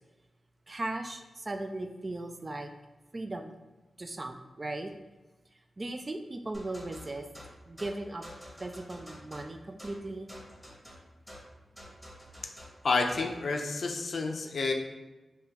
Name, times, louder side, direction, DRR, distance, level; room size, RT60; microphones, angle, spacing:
voice 1, 0.7-2.7 3.1-3.5 4.0-4.9 5.8-7.3 7.7-8.3 8.6-10.3, right 2 dB, 35° right, 6 dB, 0.3 m, -37 dB
sound 1, 6.5-13.4, equal, 5° right, 1.3 m, -49 dB
voice 2, 12.8-14.7, left 3 dB, 65° left, 3 dB, 0.4 m, -29 dB
3.7 x 2.8 x 2.9 m, 1.1 s
cardioid pair, 60°, 0 cm